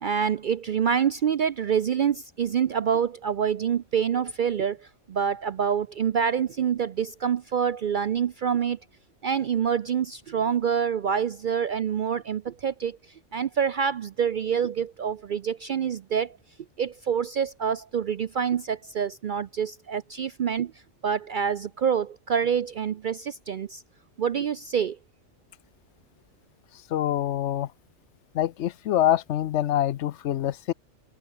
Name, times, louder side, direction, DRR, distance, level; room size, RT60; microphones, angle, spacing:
voice 1, 0.0-8.8 9.2-13.0 13.3-16.4 16.8-20.7 21.0-23.8 24.2-25.0, right 7 dB, 55° right, 0.6 m, -26 dB
voice 2, 26.9-27.7 28.3-30.7, left 12 dB, 70° left, 0.9 m, -25 dB
omnidirectional pair, 1.3 m